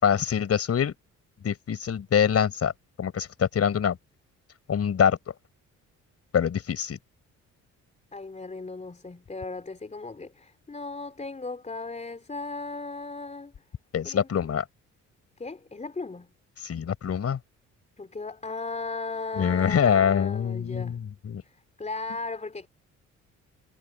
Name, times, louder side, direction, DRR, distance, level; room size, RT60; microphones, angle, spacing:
voice 1, 0.0-0.9 1.4-2.7 3.0-4.0 4.7-5.2 6.3-7.0 13.9-14.6 16.6-17.4 19.3-21.4, left 8 dB, 55° left, 5.0 m, -24 dB
voice 2, 8.1-13.5 14.0-14.3 15.4-16.3 18.0-21.0 21.4-22.7, left 3 dB, 25° left, 3.6 m, -36 dB
cardioid pair, 90°, 30 cm